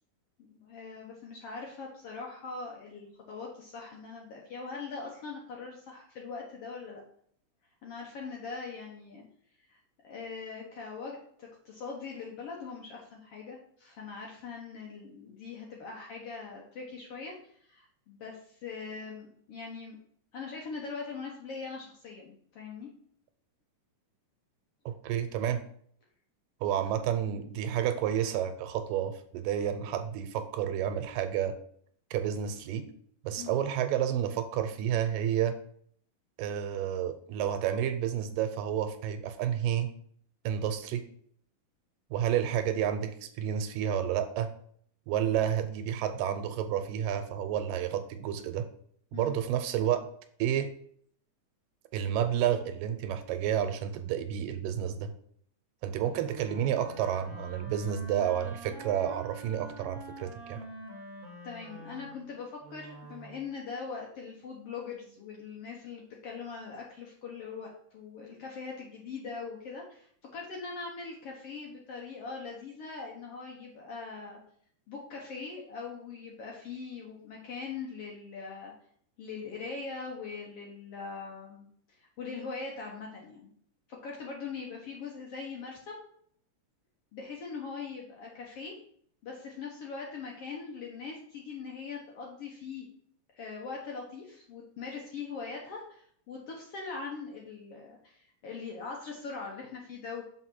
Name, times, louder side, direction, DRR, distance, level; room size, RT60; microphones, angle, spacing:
voice 1, 0.5-7.0 7.8-9.2 9.7-9.8 10.0-20.0 20.3-22.9 33.4-33.6 45.3-45.4 49.1-49.4 56.0-56.3 61.4-70.1 70.3-74.4 74.9-78.7 79.2-81.6 82.0-83.5 84.0-86.0 87.1-88.7 89.2-92.9 93.3-100.2, left 4 dB, 65° left, -1 dB, 1.6 m, -41 dB
voice 2, 24.9-25.6 26.6-31.6 32.1-32.9 33.2-35.6 36.4-39.9 40.4-41.0 42.1-44.5 45.1-48.7 49.1-50.1 50.4-50.7 51.9-55.1 55.8-60.6, right 9 dB, 90° right, 8 dB, 2.4 m, -30 dB
Wind instrument woodwind instrument, 56.1-63.5, right 1 dB, 65° right, 0.4 m, -46 dB
6.5 x 4.6 x 4.2 m, 0.62 s
omnidirectional pair, 3.8 m